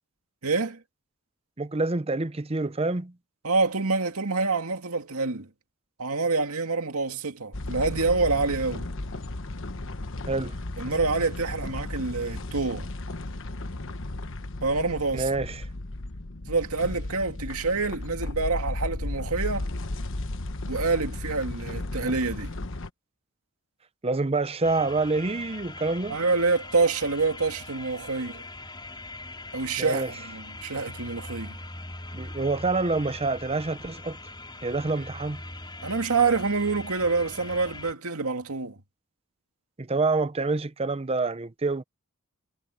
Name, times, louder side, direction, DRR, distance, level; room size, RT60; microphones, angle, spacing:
voice 1, 0.4-0.8 3.4-5.5 6.0-8.9 10.8-12.9 14.6-15.3 16.5-19.7 20.7-22.5 26.1-28.4 29.5-31.6 35.8-38.8, right 4 dB, 80° right, 2.2 m, -27 dB
voice 2, 1.6-3.1 10.3-10.6 15.1-15.7 24.0-26.2 29.8-30.1 32.1-34.2 34.6-35.4 39.8-41.8, right 3 dB, 25° right, 0.7 m, -27 dB
sound 1, 7.5-22.9, left 2 dB, 60° left, 1.2 m, -34 dB
sound 2, 24.6-37.9, left 2 dB, 20° left, 5.0 m, -41 dB
head